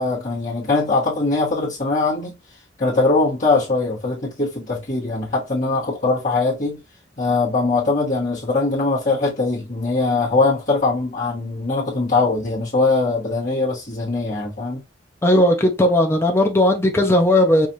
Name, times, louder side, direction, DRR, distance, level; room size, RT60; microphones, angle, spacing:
voice 1, 0.0-2.3 2.8-6.8 7.2-14.8, left 3 dB, 45° left, 1.2 m, -21 dB
voice 2, 15.2-17.7, left 1 dB, 15° left, 0.5 m, -16 dB
4.8 x 2.5 x 2.7 m
head